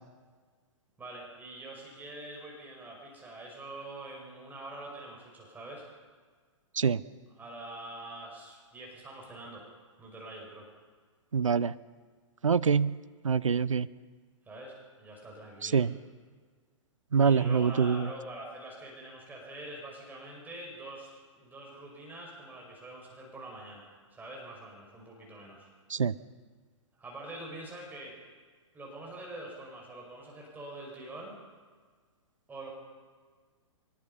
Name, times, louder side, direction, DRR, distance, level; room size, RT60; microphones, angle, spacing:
voice 1, 1.0-5.8 7.4-9.6 10.0-10.7 14.4-15.9 17.2-21.1 21.4-23.8 24.1-25.7 27.0-28.2 28.7-31.3 32.5-32.7, right 2 dB, 10° right, -2 dB, 5.5 m, -45 dB
voice 2, 11.3-11.7 12.4-13.9 15.6-15.9 17.1-18.1 25.9-26.1, right 6 dB, 80° right, 17 dB, 0.7 m, -25 dB
24.0 x 21.5 x 5.6 m, 1.5 s
figure-of-eight pair, 115°, 16 cm